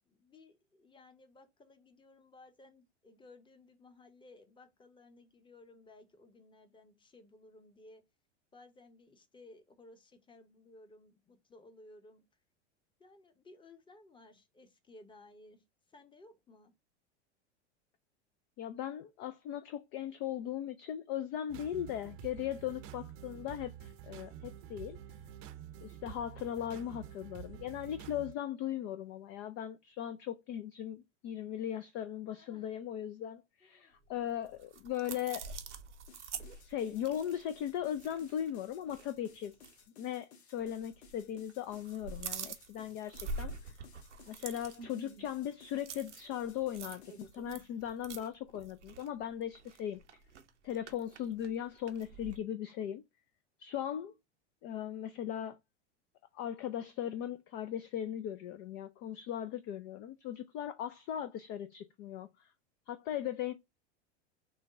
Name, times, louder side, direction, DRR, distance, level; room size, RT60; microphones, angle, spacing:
voice 1, 0.0-8.0 8.5-12.2 13.0-16.7 32.3-32.7 33.6-33.9, left 2 dB, 15° left, 0.9 m, -58 dB
voice 2, 18.6-25.0 25.8-35.5 36.6-39.5 40.0-43.5 44.3-50.0 50.6-53.0 53.6-54.1 54.6-55.6 56.3-62.5 62.9-63.5, left 10 dB, 30° left, 0.4 m, -38 dB
sound 1, 21.5-28.3, right 10 dB, 40° right, 0.7 m, -49 dB
sound 2, 34.1-38.6 38.9-39.1 39.5-39.7 40.6-41.2 41.5-52.4, right 4 dB, 80° right, 0.9 m, -46 dB
sound 3, 36.1-47.3, left 6 dB, 65° left, 1.1 m, -60 dB
6.2 x 2.2 x 3.6 m
figure-of-eight pair, 90°, 35 cm